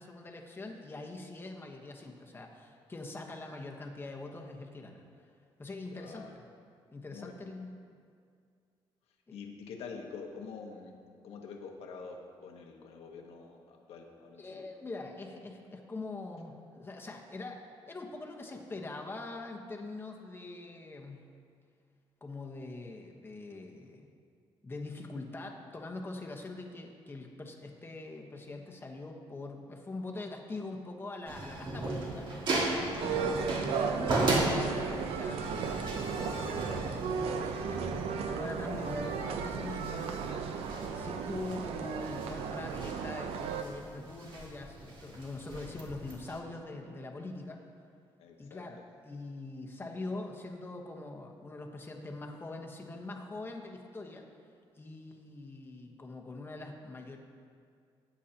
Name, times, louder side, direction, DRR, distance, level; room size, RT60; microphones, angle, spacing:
voice 1, 0.0-5.0 5.6-6.4 6.9-7.7 9.3-9.4 14.4-21.2 22.2-24.1 24.6-32.3 33.0-40.3 40.9-47.6 48.4-54.3 54.8-57.2, left 2 dB, 20° left, 1 dB, 1.2 m, -43 dB
voice 2, 5.9-6.3 7.1-7.3 9.3-11.0 11.2-14.6 48.2-48.6, left 5 dB, 85° left, 1 dB, 1.4 m, -46 dB
sound 1, 31.3-46.4, right 2 dB, 55° right, 1.9 m, -37 dB
sound 2, 33.0-43.6, right 6 dB, 80° right, 0.7 m, -35 dB
17.5 x 8.3 x 2.9 m, 2.2 s
cardioid pair, 115°, 10 cm